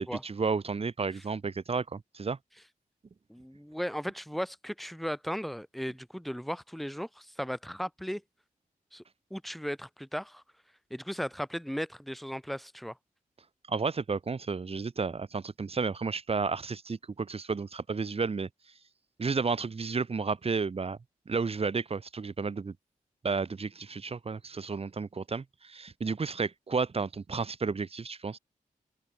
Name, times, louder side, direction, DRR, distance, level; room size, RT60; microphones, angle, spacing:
voice 1, 0.0-2.4 13.7-18.5 19.2-21.0 21.3-22.7 23.2-28.4, right 4 dB, 45° right, 1.0 m, -32 dB
voice 2, 3.3-8.2 8.9-9.0 9.3-10.4 10.9-13.0, equal, ahead, 1.8 m, -36 dB
open air
wide cardioid pair, 80°, 14 cm